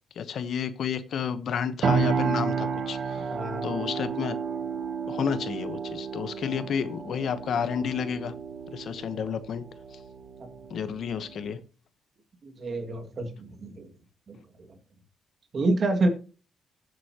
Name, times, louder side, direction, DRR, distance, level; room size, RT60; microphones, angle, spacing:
voice 1, 0.2-3.2 3.6-4.4 5.1-8.3 8.7-9.6 10.7-11.6, left 7 dB, 65° left, 1.0 m, -31 dB
sound 1, 1.8-11.6, right 6 dB, 60° right, 1.4 m, -32 dB
voice 2, 3.3-3.7 12.4-13.9 14.3-14.4 15.5-16.1, right 2 dB, 45° right, 2.2 m, -27 dB
15.5 x 8.1 x 2.9 m
cardioid pair, 90°, 0 cm